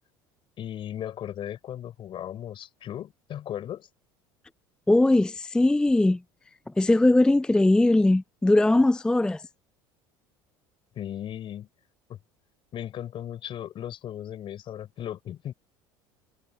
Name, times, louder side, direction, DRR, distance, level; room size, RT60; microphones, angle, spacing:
voice 1, 0.6-3.9 11.0-11.7 12.1-12.2 12.7-15.5, left 11 dB, 50° left, 5.5 m, -36 dB
voice 2, 4.9-6.2 6.7-9.5, left 2 dB, 5° left, 0.4 m, -20 dB
hypercardioid pair, 85°, 11 cm